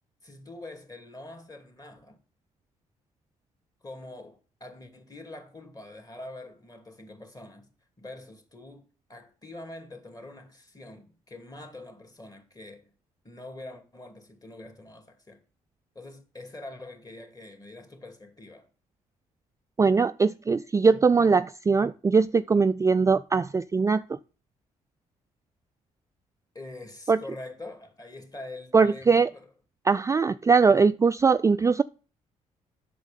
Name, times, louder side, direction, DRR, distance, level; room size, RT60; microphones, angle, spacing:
voice 1, 0.2-2.2 3.8-7.7 8.0-12.9 13.2-15.4 15.9-18.7 26.5-29.5, left 2 dB, 20° left, 2.7 m, -44 dB
voice 2, 19.8-24.2 27.1-27.2 28.7-29.3 29.9-31.8, right 5 dB, 20° right, 0.3 m, -21 dB
8.1 x 6.5 x 5.3 m
hypercardioid pair, 50°, 16 cm